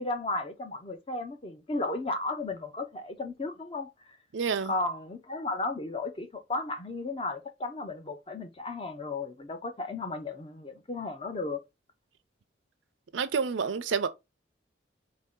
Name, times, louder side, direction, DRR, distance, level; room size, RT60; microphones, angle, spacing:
voice 1, 0.0-3.9 4.7-11.6, left 2 dB, 30° left, 0.6 m, -34 dB
voice 2, 4.3-4.7 13.1-14.1, right 5 dB, 85° right, 0.5 m, -28 dB
4.2 x 2.7 x 3.6 m
head